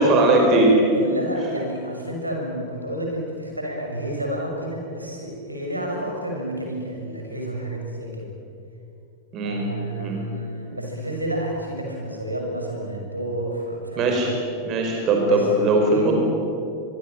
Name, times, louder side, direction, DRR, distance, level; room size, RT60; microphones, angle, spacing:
voice 1, 0.0-0.9 9.3-9.6 10.0-10.2 14.0-14.3 14.6-16.1, right 2 dB, 35° right, 1 dB, 5.1 m, -19 dB
voice 2, 0.9-8.3 9.3-14.4 15.3-16.1, right 1 dB, 85° right, 1 dB, 6.6 m, -30 dB
24.5 x 24.0 x 9.0 m, 2.7 s
figure-of-eight pair, 90°, 0 cm